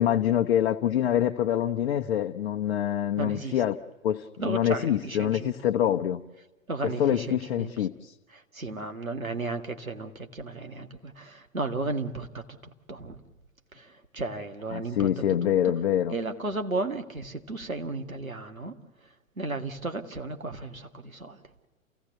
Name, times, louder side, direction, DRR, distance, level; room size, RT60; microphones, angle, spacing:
voice 1, 0.0-3.8 4.0-6.2 6.8-8.2 14.7-16.2, left 10 dB, 50° left, 1.0 m, -25 dB
voice 2, 3.2-3.6 4.4-5.5 6.7-7.7 8.3-12.5 12.9-13.2 13.7-15.5 16.1-18.8 19.4-21.4, right 2 dB, 85° right, 2.0 m, -34 dB
28.0 x 17.0 x 8.1 m
figure-of-eight pair, 110°, 41 cm